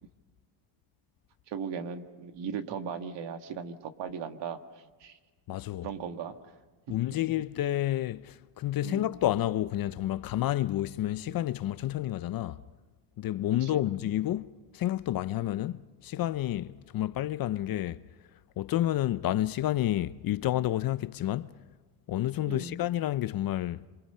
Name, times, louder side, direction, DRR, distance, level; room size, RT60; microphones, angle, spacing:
voice 1, 1.5-5.2 5.8-6.5 8.8-9.2 13.6-13.9 19.0-19.1 22.5-22.8, right 6 dB, 60° right, 1.9 m, -38 dB
voice 2, 5.5-5.9 6.9-12.6 13.2-18.0 18.6-21.5 22.1-23.8, left 13 dB, 45° left, 0.6 m, -30 dB
27.0 x 27.0 x 5.6 m
cardioid pair, 125°, 47 cm